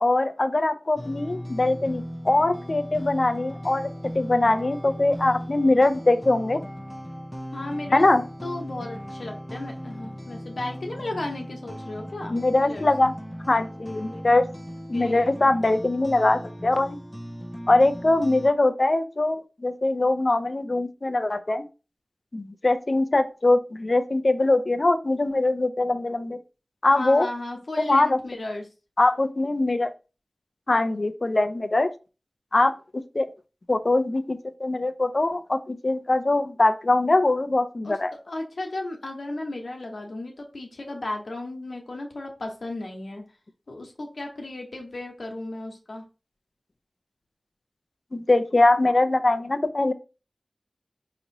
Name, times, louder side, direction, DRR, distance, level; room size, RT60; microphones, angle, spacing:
voice 1, 0.0-6.6 7.9-8.2 12.3-13.1 13.5-14.4 14.9-17.0 17.7-21.6 22.3-26.4 26.8-27.3 27.8-28.2 29.0-29.9 30.7-31.9 32.5-32.7 33.1-33.3 33.7-38.1 48.1-49.9, left 2 dB, 50° left, 10 dB, 0.4 m, -22 dB
sound 1, 1.0-18.5, equal, ahead, 0.5 m, -38 dB
voice 2, 7.5-8.1 8.4-12.9 14.9-15.3 26.9-28.6 37.8-38.0 38.3-43.2 43.7-46.0, left 2 dB, 80° left, 1 dB, 1.0 m, -35 dB
4.9 x 3.0 x 2.6 m, 0.32 s
wide cardioid pair, 60°, 0 cm